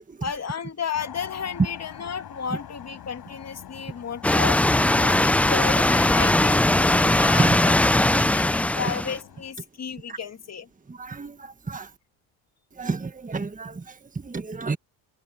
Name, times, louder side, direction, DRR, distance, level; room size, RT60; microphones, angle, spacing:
voice 1, 0.2-4.6 4.9-7.8 8.1-10.7, left 7 dB, 35° left, 2.8 m, -33 dB
sound 1, 0.9-9.5, left 10 dB, 55° left, 5.0 m, -45 dB
sound 2, 4.2-9.2, left 1 dB, 5° left, 0.4 m, -20 dB
voice 2, 10.9-11.9 12.8-14.8, right 4 dB, 15° right, 1.7 m, -31 dB
hypercardioid pair, 65°, 46 cm